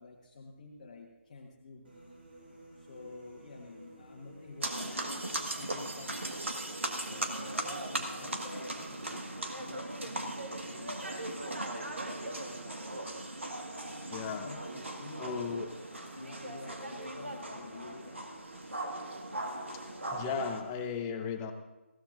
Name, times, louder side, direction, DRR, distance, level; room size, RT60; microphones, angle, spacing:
voice 1, 0.0-1.9 2.8-6.7 7.0-11.0 14.4-18.3, left 3 dB, 35° left, -1 dB, 1.3 m, -50 dB
sound 1, 1.8-20.9, right 1 dB, 50° right, 4.8 m, -54 dB
sound 2, 4.6-20.6, right 1 dB, 65° right, 1.6 m, -38 dB
voice 2, 14.1-14.5 15.2-15.7 20.1-21.5, left 5 dB, 15° left, 5 dB, 0.6 m, -35 dB
20.0 x 15.5 x 2.6 m, 1.1 s
figure-of-eight pair, 150°, 7 cm